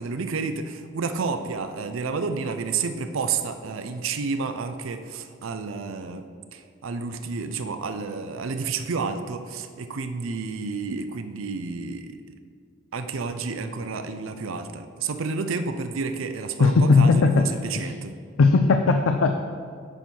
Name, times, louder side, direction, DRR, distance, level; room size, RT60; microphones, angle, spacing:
voice 1, 0.0-6.2 6.5-12.2 12.9-18.1, right 4 dB, 80° right, 8 dB, 0.5 m, -30 dB
voice 2, 16.6-17.4 17.7-17.9 18.4-19.4, left 4 dB, 90° left, 6 dB, 0.5 m, -18 dB
8.8 x 4.6 x 6.0 m, 2.1 s
head